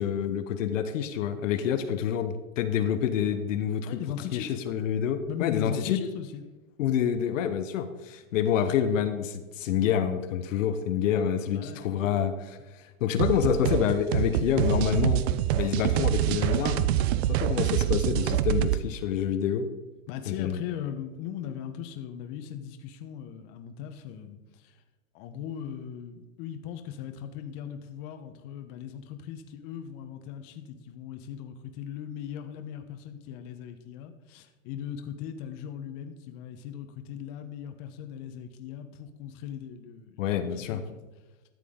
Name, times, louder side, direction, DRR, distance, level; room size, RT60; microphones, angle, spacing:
voice 1, 0.0-3.9 4.3-6.0 6.8-15.2 15.5-16.9 17.3-19.7 20.3-20.6 40.2-40.8, left 8 dB, 65° left, 8 dB, 1.0 m, -27 dB
voice 2, 3.8-4.6 5.3-6.5 11.5-12.2 20.1-24.8 25.1-41.0, left 9 dB, 40° left, 7 dB, 1.0 m, -39 dB
sound 1, 13.2-18.8, right 13 dB, 50° right, 0.5 m, -26 dB
12.5 x 7.5 x 3.7 m, 1.2 s
hypercardioid pair, 130°, 41 cm